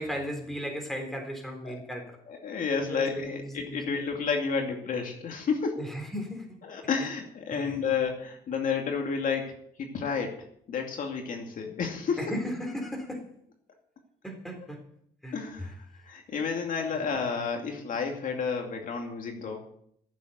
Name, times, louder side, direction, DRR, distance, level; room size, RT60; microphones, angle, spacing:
voice 1, 0.0-2.2 2.9-3.8 5.8-6.4 7.5-7.8 12.2-13.3 14.2-14.8 15.2-15.7 16.9-17.1, equal, ahead, 2 dB, 3.8 m, -36 dB
voice 2, 2.3-5.8 6.6-9.5 9.8-10.4 10.7-12.2 15.3-15.7 16.0-19.6, left 5 dB, 55° left, 2 dB, 2.4 m, -31 dB
15.0 x 7.6 x 8.0 m, 0.67 s
cardioid pair, 140°, 16 cm